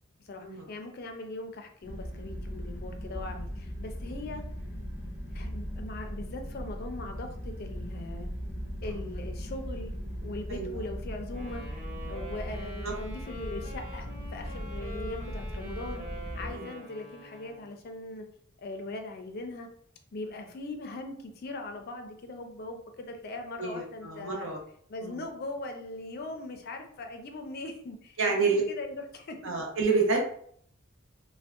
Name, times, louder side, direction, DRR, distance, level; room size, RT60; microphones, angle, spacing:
voice 1, 0.3-4.4 5.3-8.3 8.8-9.9 10.2-11.7 12.1-16.0 16.4-18.3 18.6-19.7 20.1-24.5 24.9-29.4, left 2 dB, 45° left, 5 dB, 0.4 m, -40 dB
sound 1, 1.8-16.5, equal, 10° right, 0.7 m, -38 dB
Wind instrument woodwind instrument, 11.3-17.8, equal, 35° right, 0.9 m, -45 dB
voice 2, 23.6-24.6 25.0-25.3 28.2-28.6 29.4-30.2, right 4 dB, 65° right, 0 dB, 0.7 m, -29 dB
3.5 x 2.1 x 2.3 m, 0.62 s
head